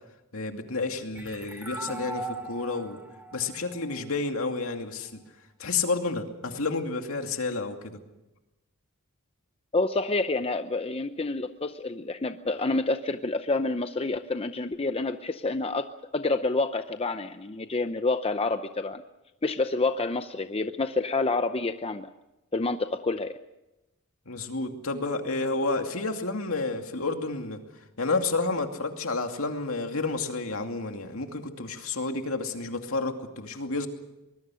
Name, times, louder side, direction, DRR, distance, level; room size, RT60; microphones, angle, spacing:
voice 1, 0.3-3.0 3.3-5.1 5.6-8.0 24.3-27.6 28.0-33.9, left 3 dB, 65° left, 5 dB, 2.5 m, -30 dB
sound 1, 1.2-4.6, right 2 dB, 10° right, 2.5 m, -39 dB
voice 2, 9.7-15.9 16.1-19.0 19.4-22.1 22.5-23.4, left 3 dB, 25° left, 9 dB, 0.7 m, -28 dB
24.0 x 21.5 x 6.4 m, 0.98 s
head